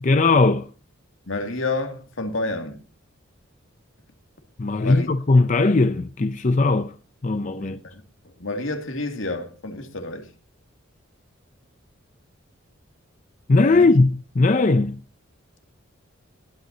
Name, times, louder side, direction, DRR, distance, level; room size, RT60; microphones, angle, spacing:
voice 1, 0.0-0.7 4.6-6.9 7.2-7.8 13.5-15.0, left 3 dB, 35° left, 0.5 m, -19 dB
voice 2, 1.3-2.8 4.8-5.1 7.6-7.9 8.4-10.3 13.7-13.9, left 2 dB, 70° left, 2.3 m, -29 dB
20.5 x 9.4 x 2.8 m
head